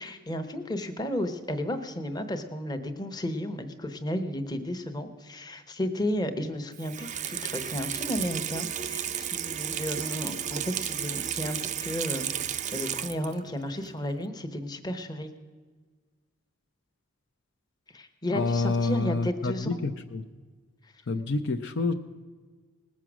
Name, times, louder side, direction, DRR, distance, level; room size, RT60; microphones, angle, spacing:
voice 1, 0.0-15.3 17.9-19.8, left 1 dB, 20° left, 7 dB, 0.9 m, -33 dB
Water tap faucet / Sink (filling or washing), 6.7-13.5 13.8-13.9, right 9 dB, 35° right, 0.4 m, -33 dB
voice 2, 18.3-20.2 21.1-21.9, left 3 dB, 55° left, 7 dB, 0.6 m, -28 dB
19.0 x 7.4 x 6.1 m, 1.5 s
head